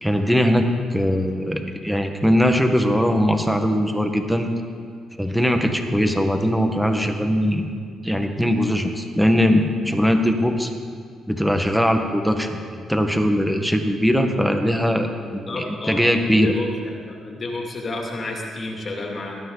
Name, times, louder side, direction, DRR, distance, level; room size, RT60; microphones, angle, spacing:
voice 1, 0.0-4.5 5.2-7.7 8.0-10.7 11.3-15.1 15.3-16.5, equal, ahead, 5 dB, 1.4 m, -20 dB
voice 2, 15.3-17.0 17.3-19.4, left 2 dB, 40° left, 0 dB, 2.5 m, -31 dB
18.5 x 12.5 x 4.0 m, 2.1 s
cardioid pair, 90°, 0 cm